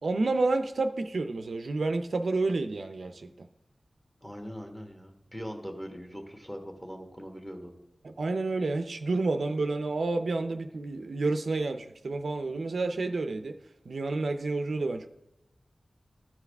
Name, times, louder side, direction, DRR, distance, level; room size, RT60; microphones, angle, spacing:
voice 1, 0.0-3.5 8.0-13.6 13.9-15.1, right 3 dB, 75° right, 8 dB, 0.4 m, -29 dB
voice 2, 4.2-7.7, equal, 10° left, 3 dB, 1.3 m, -41 dB
13.5 x 4.7 x 3.4 m, 0.89 s
wide cardioid pair, 90°, 0 cm